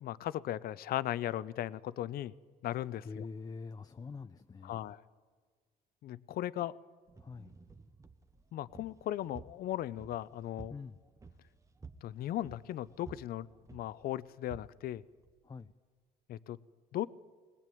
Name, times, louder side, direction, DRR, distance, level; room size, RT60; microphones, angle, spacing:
voice 1, 0.0-2.3 2.6-3.2 4.6-5.0 6.0-6.8 8.5-10.7 12.0-15.0 16.3-16.6 16.9-17.1, left 13 dB, 60° left, 18 dB, 0.7 m, -37 dB
voice 2, 3.0-4.8 7.2-7.5 10.7-11.0 15.4-15.7, left 4 dB, 20° left, 9 dB, 0.6 m, -45 dB
sound 1, 7.1-15.7, right 4 dB, 20° right, 1.0 m, -55 dB
21.5 x 19.0 x 9.2 m, 1.5 s
cardioid pair, 110°, 17 cm